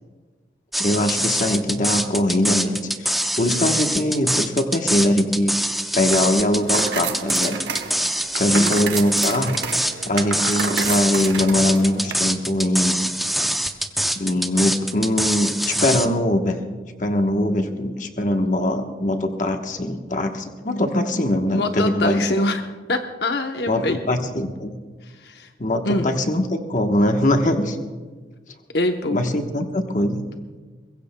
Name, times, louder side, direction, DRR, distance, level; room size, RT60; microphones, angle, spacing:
sound 1, 0.7-16.1, equal, ahead, 0.6 m, -24 dB
voice 1, 0.8-5.5 5.9-7.6 8.4-9.6 10.1-13.1 14.1-16.6 17.0-22.2 23.7-24.7 25.6-27.8 29.1-30.3, left 1 dB, 45° left, 5 dB, 1.1 m, -22 dB
sound 2, 6.0-12.1, right 5 dB, 80° right, 0.9 m, -30 dB
voice 2, 8.5-8.9 21.5-22.6 22.9-24.0 25.0-25.5 25.8-26.1 28.7-29.2, left 2 dB, 70° left, 5 dB, 0.9 m, -24 dB
22.5 x 21.5 x 2.2 m, 1.4 s
head